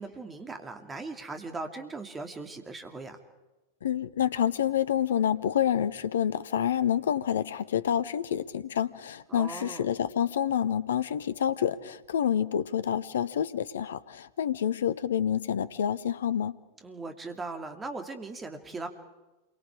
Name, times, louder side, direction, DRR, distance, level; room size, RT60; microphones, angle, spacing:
voice 1, 0.0-3.2 9.3-9.9 16.8-18.9, right 3 dB, 15° right, 5 dB, 2.7 m, -39 dB
voice 2, 3.8-16.6, left 9 dB, 65° left, 15 dB, 0.9 m, -28 dB
28.0 x 23.5 x 5.0 m, 1.1 s
figure-of-eight pair, 90°, 0 cm